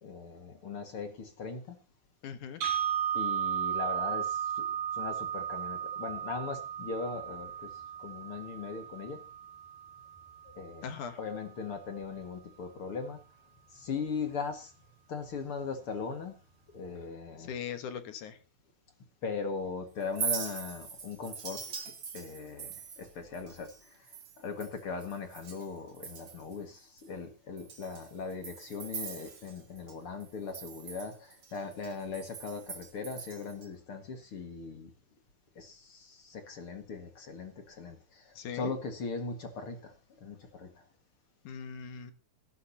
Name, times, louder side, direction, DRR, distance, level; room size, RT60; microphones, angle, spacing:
voice 1, 0.0-1.8 3.1-4.6 4.9-7.7 8.0-9.2 10.5-10.9 11.2-13.2 13.7-14.7 15.1-16.4 16.7-17.5 19.2-21.8 22.1-24.0 24.4-34.9 35.6-39.9 40.2-40.7, left 5 dB, 45° left, 2.2 m, -39 dB
voice 2, 2.2-2.6 10.8-11.2 17.4-18.4 38.4-38.8 41.4-42.1, left 7 dB, 65° left, 2.6 m, -40 dB
sound 1, 2.6-10.6, right 9 dB, 75° right, 4.4 m, -35 dB
Chink clink, 20.0-25.7 25.9-26.6 27.0-27.1 27.6-29.9 30.2-33.7, right 6 dB, 35° right, 2.6 m, -41 dB
17.5 x 15.0 x 2.8 m
omnidirectional pair, 4.1 m